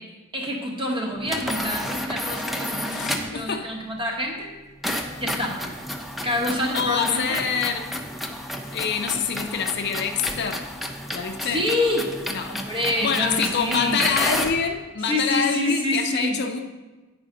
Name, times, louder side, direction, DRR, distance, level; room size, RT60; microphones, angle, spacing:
voice 1, 0.3-4.5 5.2-5.6 6.2-7.4 11.4-12.1 12.5-14.0 15.0-16.4, left 1 dB, 25° right, -1 dB, 1.2 m, -27 dB
sound 1, 1.2-3.4 4.8-14.6, equal, ahead, 0.4 m, -31 dB
voice 2, 2.9-3.7 6.7-7.9 8.7-10.7 11.1-11.7 12.3-12.6 13.0-16.6, left 6 dB, 55° left, 5 dB, 0.5 m, -26 dB
8.9 x 5.0 x 3.8 m, 1.2 s
head